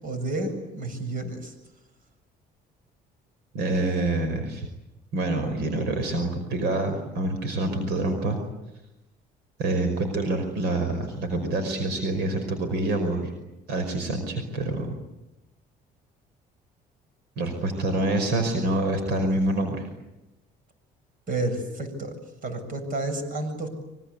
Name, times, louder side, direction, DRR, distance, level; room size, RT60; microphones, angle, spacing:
voice 1, 0.0-1.5 21.3-22.2 22.4-23.7, right 2 dB, 55° right, 8 dB, 7.4 m, -30 dB
voice 2, 3.5-4.7 5.1-8.4 9.6-13.3 13.7-14.9 17.4-19.9, right 2 dB, 80° right, 7 dB, 5.3 m, -26 dB
26.5 x 24.5 x 8.4 m, 0.95 s
cardioid pair, 110°, 17 cm